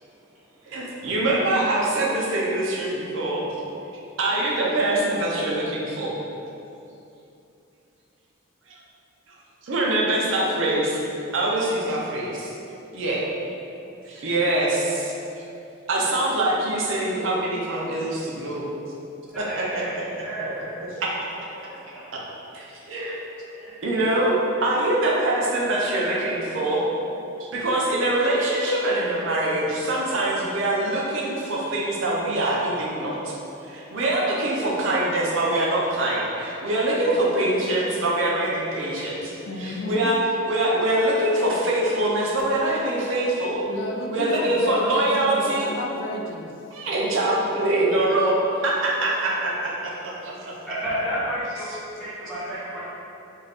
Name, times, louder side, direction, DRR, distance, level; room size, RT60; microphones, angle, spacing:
voice 1, 0.7-3.4 4.2-6.1 8.7-8.8 9.3-9.4 9.6-11.1 11.3-12.5 12.9-13.2 14.1-15.1 15.9-18.7 19.4-20.0 20.8-20.9 21.4-21.5 22.5-23.1 23.5-26.8 27.4-33.4 33.6-39.3 39.6-43.6 44.1-45.7 46.7-48.4 48.6-50.5 51.7-51.8, right 1 dB, 65° right, -4 dB, 0.5 m, -24 dB
voice 2, 19.3-19.9 20.2-20.8 23.6-23.7 24.6-24.7 26.2-26.3 50.7-51.7 51.9-52.8, equal, ahead, -14 dB, 1.0 m, -31 dB
voice 3, 37.2-37.8 39.4-40.1 43.7-46.5, left 1 dB, 60° left, 1 dB, 0.3 m, -32 dB
2.6 x 2.4 x 3.4 m, 2.7 s
head